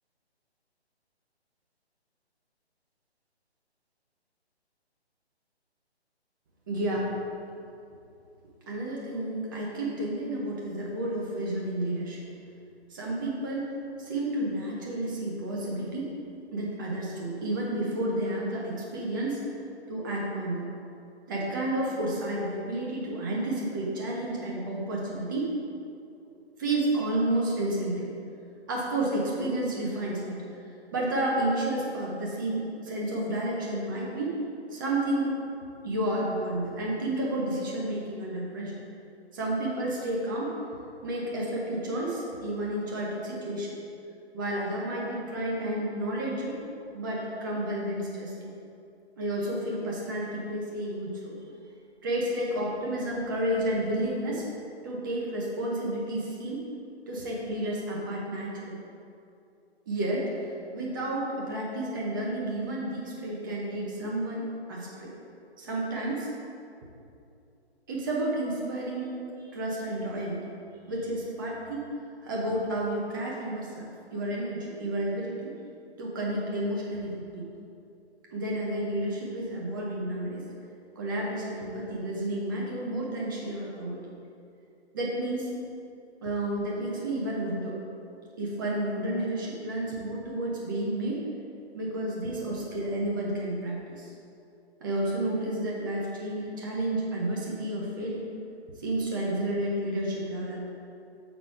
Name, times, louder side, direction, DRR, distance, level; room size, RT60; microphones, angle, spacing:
voice 1, 6.7-7.1 8.7-12.2 12.9-13.7 14.0-16.1 16.5-19.4 19.9-20.7 21.3-25.5 26.6-28.1 28.7-30.4 30.9-34.4 34.7-35.4 35.8-38.7 39.3-40.5 41.0-43.8 44.3-46.6 46.9-48.5 49.2-51.4 52.0-54.5 54.8-56.7 57.1-58.8 59.9-60.4 60.7-65.1 65.6-66.3 67.9-70.4 70.9-71.9 72.2-75.5 76.0-77.5 78.3-80.5 81.0-84.0 84.9-85.5 86.2-87.8 88.4-91.3 91.7-94.1 94.8-98.3 98.8-100.7, right 1 dB, 20° right, -4 dB, 0.7 m, -31 dB
7.4 x 4.0 x 4.6 m, 2.6 s
figure-of-eight pair, 145°, 33 cm